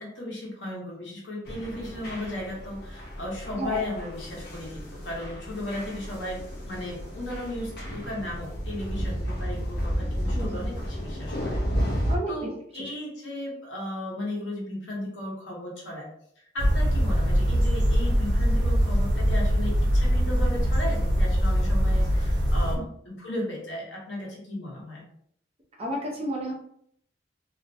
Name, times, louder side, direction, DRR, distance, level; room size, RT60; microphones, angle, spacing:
voice 1, 0.0-11.6 12.3-16.1 16.4-25.0, left 1 dB, 80° left, -3 dB, 0.9 m, -35 dB
sound 1, 1.5-12.2, equal, 60° left, 0.6 m, -32 dB
sound 2, 16.6-22.8, equal, 65° right, 0.8 m, -22 dB
voice 2, 25.8-26.5, right 1 dB, 35° right, -3 dB, 0.7 m, -31 dB
2.4 x 2.1 x 2.6 m, 0.68 s
head